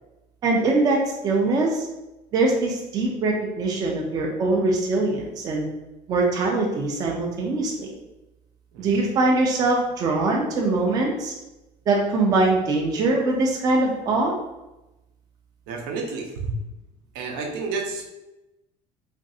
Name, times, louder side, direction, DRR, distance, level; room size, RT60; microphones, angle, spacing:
voice 1, 0.4-1.9 2.3-5.7 6.1-7.9 8.8-11.3 11.9-14.3, right 2 dB, 25° right, 0 dB, 0.4 m, -22 dB
voice 2, 15.7-16.5 17.1-18.1, right 4 dB, 75° right, 2 dB, 0.6 m, -30 dB
3.0 x 2.5 x 2.6 m, 0.98 s
cardioid pair, 165°, 14 cm